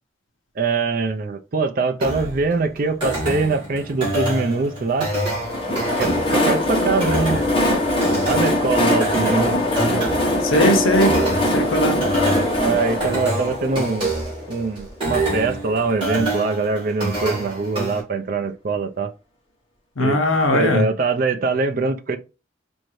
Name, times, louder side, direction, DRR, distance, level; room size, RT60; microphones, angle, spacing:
voice 1, 0.6-5.1 6.0-7.4 8.3-9.6 12.5-14.1 14.5-19.1 20.0-20.2 20.5-22.2, right 4 dB, 45° right, 0.4 m, -23 dB
sound 1, 2.0-18.0, right 2 dB, 25° right, 2.1 m, -27 dB
Train, 5.2-14.9, left 1 dB, 25° left, 1.1 m, -22 dB
voice 2, 10.4-11.2 11.5-12.0 20.0-20.9, left 1 dB, 85° left, 0.8 m, -19 dB
4.5 x 2.6 x 3.1 m
head